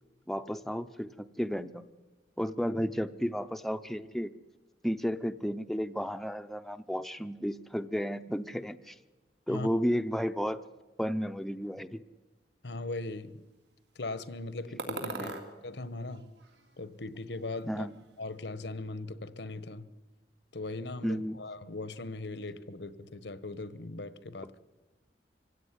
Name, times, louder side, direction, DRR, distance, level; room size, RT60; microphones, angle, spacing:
voice 1, 0.3-1.8 2.4-4.3 4.8-9.0 9.5-10.6 11.0-12.0 15.1-15.5 17.7-17.9 21.0-21.4, equal, ahead, 10 dB, 0.7 m, -33 dB
voice 2, 12.6-13.4 13.9-15.3 15.6-16.3 16.8-17.9 18.2-19.9 20.5-24.6, left 2 dB, 80° left, 15 dB, 1.2 m, -39 dB
sound 1, 14.8-15.5 16.0-17.0 17.3-18.1, right 3 dB, 75° right, 3.4 m, -41 dB
25.0 x 16.5 x 9.7 m, 1.2 s
head